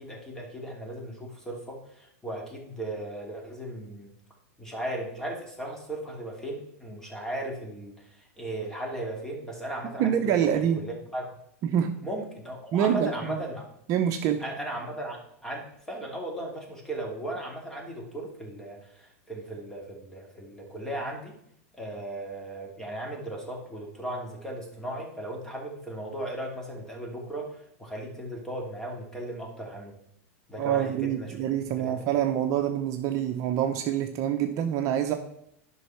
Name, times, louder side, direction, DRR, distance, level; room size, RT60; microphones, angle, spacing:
voice 1, 0.0-4.1 4.6-10.2 10.8-11.3 12.0-13.6 14.4-21.4 21.7-29.9 30.5-31.4 31.8-32.1, right 1 dB, 5° left, 0 dB, 2.7 m, -37 dB
voice 2, 10.0-10.8 11.6-12.0 12.7-13.4 13.9-14.4 30.6-35.1, right 9 dB, 45° right, 5 dB, 0.9 m, -26 dB
9.7 x 5.5 x 5.8 m, 0.74 s
supercardioid pair, 125°, 8 cm